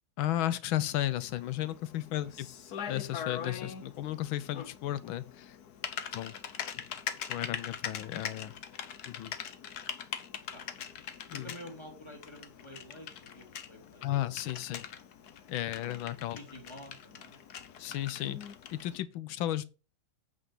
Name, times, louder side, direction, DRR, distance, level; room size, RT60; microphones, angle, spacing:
voice 1, 0.2-2.5 2.9-5.6 6.1-6.4 7.3-8.5 9.0-9.3 11.3-11.5 14.0-14.9 15.5-16.4 17.8-18.4 18.7-19.6, left 13 dB, 75° left, 1.5 m, -34 dB
Typing, 0.9-19.0, left 8 dB, 60° left, 1.2 m, -42 dB
voice 2, 5.9-6.7 7.0-7.1 10.0-10.6 11.3-14.0 16.3-17.4, left 1 dB, 15° left, 2.3 m, -50 dB
8.6 x 5.4 x 5.3 m
omnidirectional pair, 2.3 m